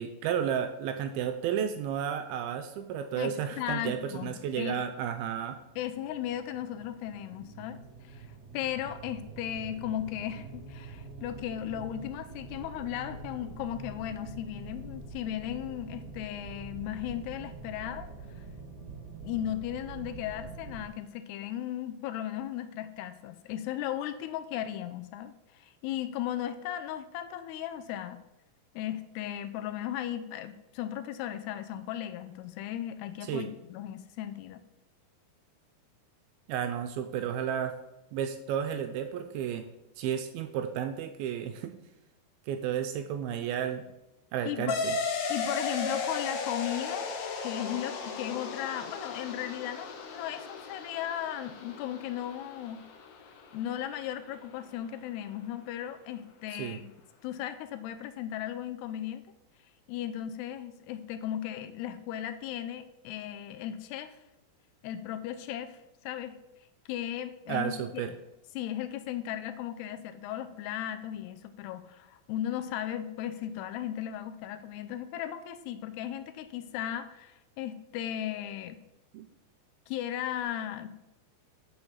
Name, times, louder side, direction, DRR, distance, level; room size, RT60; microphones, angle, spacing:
voice 1, 0.0-5.6 33.2-33.5 36.5-37.7 38.1-39.6 40.0-41.7 42.5-43.8 44.3-45.0 56.5-56.8 67.5-68.1 79.1-79.2, right 9 dB, 80° right, 8 dB, 2.3 m, -32 dB
voice 2, 3.2-4.8 5.8-7.8 8.1-8.3 8.5-18.1 19.2-28.2 28.8-34.7 44.5-44.8 45.3-47.1 47.4-52.9 53.5-56.9 57.2-59.2 59.9-64.2 64.8-65.8 66.0-66.4 66.9-68.2 68.5-78.8 79.9-80.9, left 11 dB, 85° left, 10 dB, 2.8 m, -36 dB
sound 1, 4.9-20.9, right 4 dB, 40° right, 1.9 m, -46 dB
sound 2, 44.7-53.7, left 4 dB, 65° left, 2.3 m, -36 dB
8.1 x 6.2 x 7.3 m, 0.91 s
omnidirectional pair, 4.7 m